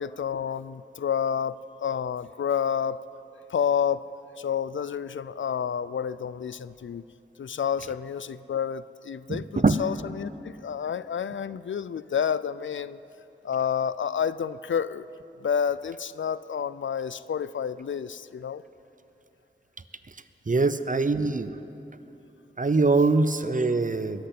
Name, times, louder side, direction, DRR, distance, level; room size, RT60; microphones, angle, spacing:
voice 1, 0.0-3.0 3.5-4.0 4.4-7.0 7.4-13.0 13.4-15.1 15.4-18.6, left 7 dB, 80° left, 16 dB, 0.4 m, -29 dB
voice 2, 9.3-9.8 20.5-21.5 22.6-24.3, right 3 dB, 45° right, 12 dB, 0.7 m, -23 dB
21.0 x 8.0 x 8.4 m, 2.9 s
wide cardioid pair, 55°, 19 cm